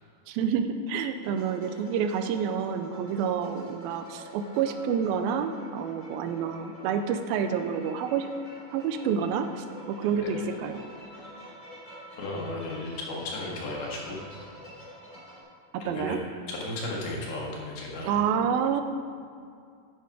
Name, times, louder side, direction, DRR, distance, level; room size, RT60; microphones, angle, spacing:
voice 1, 0.3-8.3 8.7-10.8 15.7-16.2 18.0-18.8, right 7 dB, 85° right, 8 dB, 2.4 m, -28 dB
sound 1, 1.2-15.4, left 1 dB, 15° left, 2.1 m, -47 dB
voice 2, 12.2-14.2 15.8-16.2 16.5-18.1, left 2 dB, 85° left, -3 dB, 3.7 m, -34 dB
10.0 x 8.2 x 4.8 m, 2.2 s
omnidirectional pair, 4.3 m